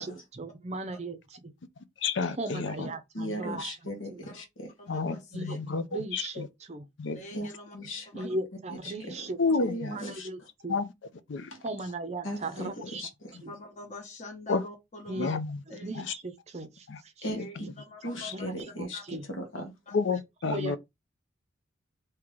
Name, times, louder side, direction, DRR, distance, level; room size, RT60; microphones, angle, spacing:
voice 1, 0.0-1.5 2.4-3.8 4.1-4.3 5.3-6.9 8.1-10.8 11.6-13.1 13.4-13.5 15.1-15.3 15.7-17.3 17.6-17.7 18.2-18.4 18.8-19.2 20.4-20.8, right 2 dB, 35° right, 0.5 m, -38 dB
voice 2, 2.0-2.9 4.9-5.8 6.1-6.5 7.0-7.2 9.4-9.9 10.7-10.9 11.3-11.5 14.5-14.6 15.2-15.6 16.9-17.0 17.3-17.5 19.9-20.8, left 4 dB, 70° left, 0.5 m, -30 dB
voice 3, 3.1-4.7 7.3-7.5 7.7-8.3 8.8-9.1 9.6-10.3 11.3-11.6 12.2-12.7 13.0-13.3 17.2-17.4 18.0-19.7, equal, 85° left, 1.2 m, -37 dB
voice 4, 4.8-5.6 7.1-7.8 8.1-8.3 13.5-15.3 15.7-15.9 17.4-18.5 18.9-19.0 19.9-20.0, left 2 dB, 35° left, 1.0 m, -46 dB
3.7 x 2.9 x 3.2 m
head